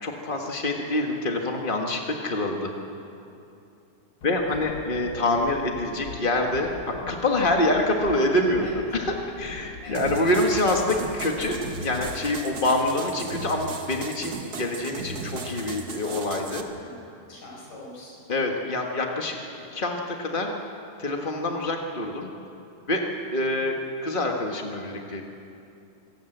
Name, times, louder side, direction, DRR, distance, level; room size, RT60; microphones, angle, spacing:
voice 1, 0.0-2.7 4.2-16.9 18.3-20.5 21.0-22.3 22.9-23.0 23.3-23.8 24.0-25.2, left 1 dB, 40° left, 1 dB, 0.7 m, -26 dB
voice 2, 4.2-4.6 8.6-8.7 9.8-10.0 16.8-18.2 23.5-23.8, left 2 dB, 75° left, -3 dB, 7.1 m, -45 dB
sound 1, 4.2-12.2, left 4 dB, 60° left, 1.1 m, -43 dB
sound 2, 9.9-16.6, right 3 dB, 45° right, 1.3 m, -36 dB
25.5 x 18.0 x 7.9 m, 2.7 s
omnidirectional pair, 3.6 m